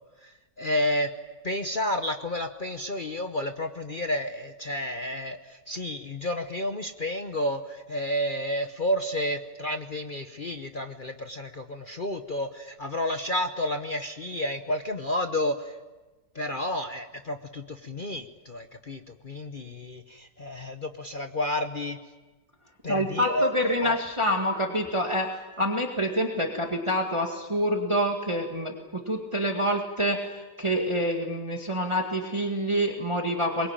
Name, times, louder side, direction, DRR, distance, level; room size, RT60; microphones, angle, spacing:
voice 1, 0.2-1.1 1.4-15.8 16.3-22.0 22.8-23.5 23.8-24.0, left 1 dB, 35° left, 7 dB, 0.9 m, -31 dB
voice 2, 22.9-33.7, equal, 15° right, 2 dB, 1.9 m, -27 dB
24.0 x 22.0 x 8.9 m, 1.2 s
omnidirectional pair, 1.9 m